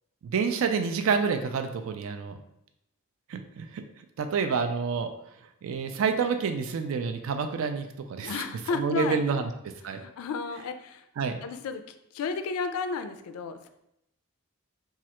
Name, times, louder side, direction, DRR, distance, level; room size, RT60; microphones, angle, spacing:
voice 1, 0.2-2.4 3.3-3.8 4.2-5.1 5.6-8.4 8.7-9.5 9.8-10.0 11.2-11.4, right 5 dB, 65° right, 7 dB, 0.3 m, -28 dB
voice 2, 8.2-9.2 9.8-11.1 11.4-13.7, left 4 dB, 80° left, 9 dB, 0.3 m, -33 dB
3.1 x 2.4 x 2.9 m, 0.81 s
head